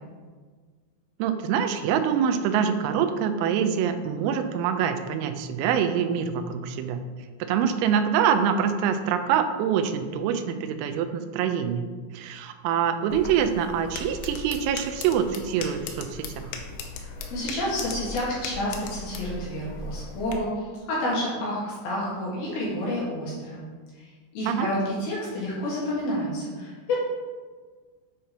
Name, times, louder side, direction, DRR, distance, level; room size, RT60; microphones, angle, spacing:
voice 1, 1.2-7.1 7.5-16.5 24.4-24.7, right 8 dB, 90° right, 8 dB, 3.3 m, -25 dB
sound 1, 13.1-20.4, left 3 dB, 90° left, 3.5 m, -38 dB
voice 2, 17.0-23.6 24.0-27.0, left 1 dB, 60° left, -6 dB, 3.1 m, -29 dB
9.0 x 5.0 x 4.4 m, 1.5 s
omnidirectional pair, 5.9 m